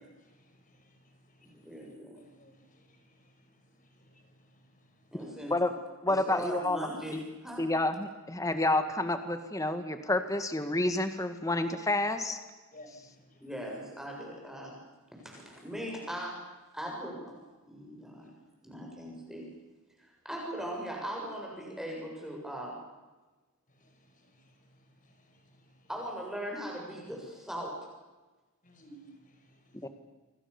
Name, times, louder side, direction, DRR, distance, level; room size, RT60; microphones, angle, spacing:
voice 1, 0.0-5.4 12.7-13.5 15.2-15.4 23.7-25.9 28.6-29.9, equal, 35° left, 5 dB, 5.4 m, -59 dB
voice 2, 1.6-2.1 5.1-5.5 6.1-7.7 13.4-14.8 15.2-16.5 16.7-17.4 17.7-18.3 18.6-19.5 20.0-22.8 25.9-27.9, equal, ahead, -1 dB, 7.5 m, -39 dB
voice 3, 6.0-7.2 7.6-12.4 29.8-29.9, left 2 dB, 15° left, 8 dB, 1.8 m, -29 dB
27.5 x 24.0 x 7.2 m, 1.2 s
head